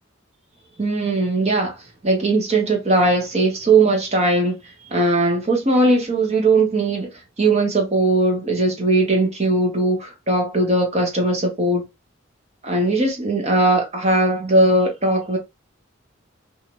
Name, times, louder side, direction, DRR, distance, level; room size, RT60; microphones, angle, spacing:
voice 1, 0.8-4.6 4.9-7.1 7.4-11.8 12.6-15.4, right 2 dB, 35° right, 0.9 m, -19 dB
2.7 x 2.4 x 2.9 m
head